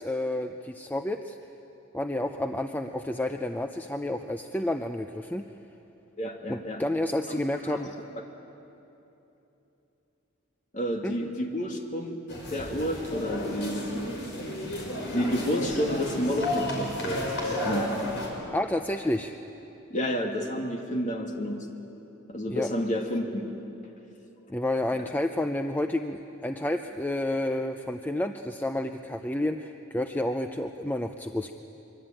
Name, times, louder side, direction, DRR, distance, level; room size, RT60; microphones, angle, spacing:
voice 1, 0.0-1.4 1.9-5.4 6.5-7.9 11.0-11.1 18.5-19.4 22.5-22.7 24.5-31.5, left 1 dB, 10° left, 6 dB, 0.5 m, -30 dB
voice 2, 6.2-6.8 7.3-7.9 10.7-12.2 12.5-14.1 15.0-17.9 19.9-21.7 22.3-23.5 24.9-25.0, equal, 35° left, 2 dB, 2.4 m, -30 dB
sound 1, 12.3-18.3, left 1 dB, 55° left, 5.5 m, -32 dB
24.5 x 23.5 x 9.0 m, 3.0 s
head